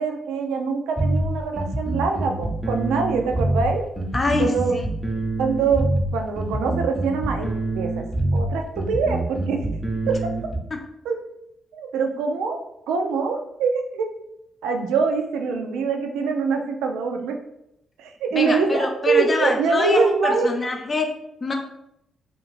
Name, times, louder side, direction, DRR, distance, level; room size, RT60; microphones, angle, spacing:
voice 1, 0.0-3.8 4.4-4.8 5.4-7.5 7.7-8.0 8.3-9.6 10.1-10.2 11.0-11.2 11.7-12.6 12.9-14.1 14.6-17.3 18.0-20.5, right 4 dB, 80° right, 4 dB, 0.3 m, -24 dB
sound 1, 1.0-10.6, right 2 dB, 5° right, 0.7 m, -25 dB
voice 2, 4.1-4.8 10.7-10.8 18.3-21.1 21.4-21.5, left 3 dB, 40° left, 3 dB, 0.6 m, -25 dB
2.4 x 2.4 x 3.0 m, 0.81 s
hypercardioid pair, 45°, 0 cm